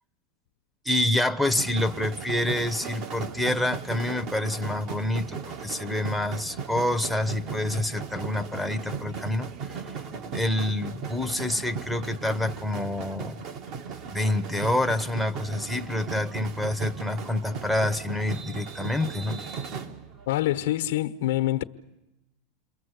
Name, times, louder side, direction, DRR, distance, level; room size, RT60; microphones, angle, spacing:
voice 1, 0.8-9.8 10.3-13.4 14.1-19.4, left 1 dB, ahead, 1.1 m, -27 dB
sound 1, 1.4-20.4, right 6 dB, 50° right, 2.2 m, -37 dB
voice 2, 20.3-21.6, left 14 dB, 80° left, 1.1 m, -25 dB
29.5 x 22.0 x 8.2 m
supercardioid pair, 120°, 0 cm